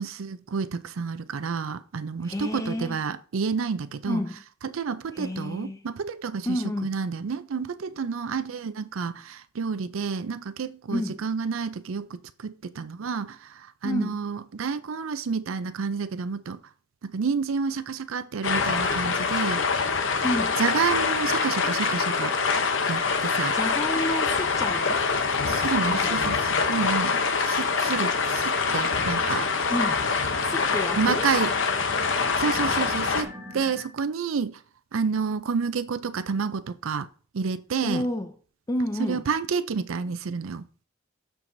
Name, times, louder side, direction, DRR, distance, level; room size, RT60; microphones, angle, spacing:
voice 1, 0.0-4.2 4.6-16.6 17.0-19.6 20.6-22.3 22.9-23.6 25.4-29.5 30.9-31.5 32.3-34.6 34.9-37.1 37.3-38.0 39.0-40.6, right 5 dB, 80° right, 0.5 m, -29 dB
voice 2, 2.2-3.0 4.1-4.4 5.1-5.9 6.5-7.0 10.9-11.2 13.8-14.2 20.2-20.6 23.5-25.0 25.9-26.4 29.7-30.1 30.4-31.3 37.8-38.3 38.7-39.2, left 1 dB, 15° left, 0.4 m, -30 dB
sound 1, 18.4-33.2, left 4 dB, 65° left, 0.8 m, -25 dB
sound 2, 26.3-33.8, equal, 10° right, 1.5 m, -46 dB
13.0 x 4.7 x 2.6 m
head